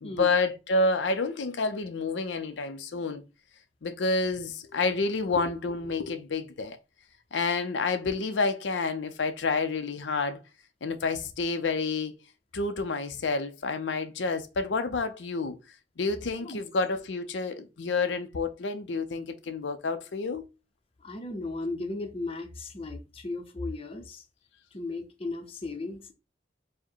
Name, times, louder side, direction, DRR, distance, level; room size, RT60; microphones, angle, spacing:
voice 1, 0.0-3.2 3.8-6.8 7.3-10.4 10.8-12.1 12.5-15.6 16.0-20.4, left 3 dB, 85° left, 0.6 m, -29 dB
voice 2, 21.0-24.2 24.7-26.1, left 2 dB, 30° left, 0.7 m, -36 dB
4.7 x 2.1 x 4.4 m
head